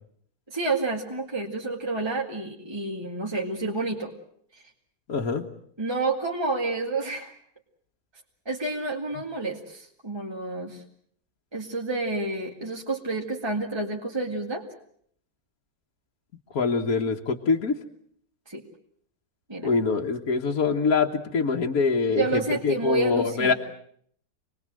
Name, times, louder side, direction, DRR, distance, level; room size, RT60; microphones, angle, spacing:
voice 1, 0.5-4.1 5.8-7.4 8.5-10.8 11.5-14.6 18.5-18.6 19.5-19.7 22.1-23.5, right 3 dB, 15° right, 0 dB, 2.1 m, -29 dB
voice 2, 5.1-5.4 16.5-17.7 19.6-23.5, left 4 dB, 60° left, 0 dB, 1.8 m, -24 dB
27.0 x 20.5 x 7.6 m, 0.65 s
omnidirectional pair, 1.7 m